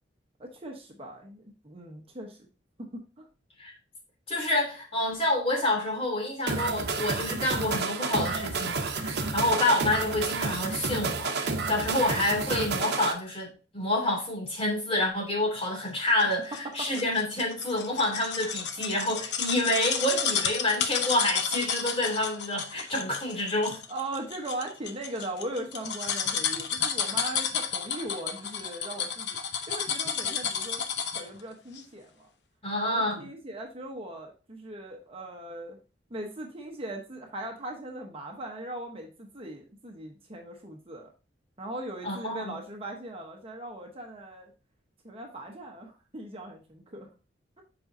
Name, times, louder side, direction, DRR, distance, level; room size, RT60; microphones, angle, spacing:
voice 1, 0.4-2.5 2.8-3.3 16.5-16.9 23.9-29.4 29.7-30.8 31.1-32.3 32.8-35.8 36.1-41.1 41.6-44.5 45.0-47.1, right 1 dB, 30° right, 1.1 m, -39 dB
voice 2, 4.3-23.8 32.6-33.2 42.0-42.6, left 1 dB, 35° left, 2.8 m, -28 dB
sound 1, 6.5-13.1, right 4 dB, 65° right, 0.9 m, -30 dB
sound 2, 16.2-31.4 31.7-31.8, left 7 dB, 65° left, 0.8 m, -31 dB
7.7 x 5.2 x 2.7 m
head